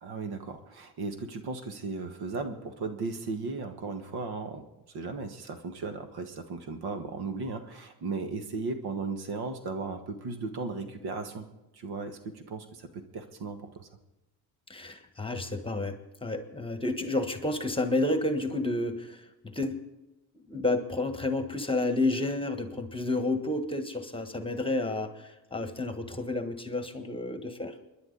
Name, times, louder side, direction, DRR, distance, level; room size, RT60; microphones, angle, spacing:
voice 1, 0.0-4.7 4.9-11.5 11.7-13.9, right 4 dB, 70° right, 7 dB, 1.6 m, -36 dB
voice 2, 14.7-19.2 19.5-19.8 20.5-27.7, left 2 dB, 15° left, 8 dB, 1.4 m, -30 dB
28.5 x 10.5 x 4.0 m, 0.98 s
cardioid pair, 85°, 39 cm